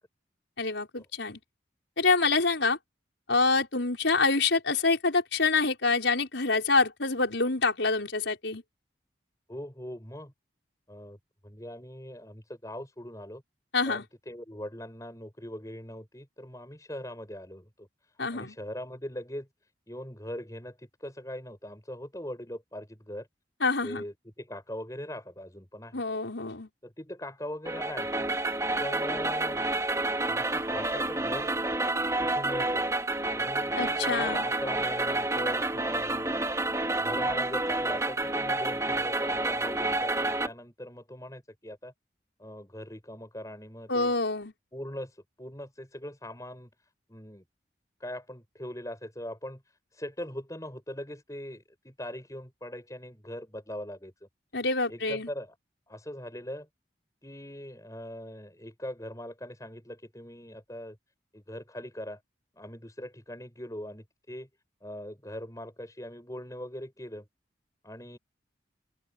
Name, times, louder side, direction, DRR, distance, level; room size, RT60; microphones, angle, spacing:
voice 1, 0.6-1.4 2.0-2.8 3.3-8.6 13.7-14.1 18.2-18.6 23.6-24.1 25.9-26.7 33.8-34.4 43.9-44.5 54.5-55.3, left 3 dB, 80° left, 5.4 m, -26 dB
voice 2, 9.5-10.3 10.9-11.2 11.4-13.4 13.9-17.9 18.3-19.5 19.9-23.3 23.8-26.0 26.8-28.3 28.8-29.7 30.2-31.5 32.2-32.8 33.3-36.4 36.9-41.9 42.4-44.1 44.7-46.7 47.1-47.4 48.0-49.6 49.9-54.1 54.9-55.5 55.9-56.7 57.2-61.0 61.3-62.2 62.6-64.5 64.8-67.3 67.8-68.2, left 1 dB, 20° left, 6.7 m, -41 dB
sound 1, 27.6-40.5, right 2 dB, 15° right, 3.0 m, -29 dB
open air
head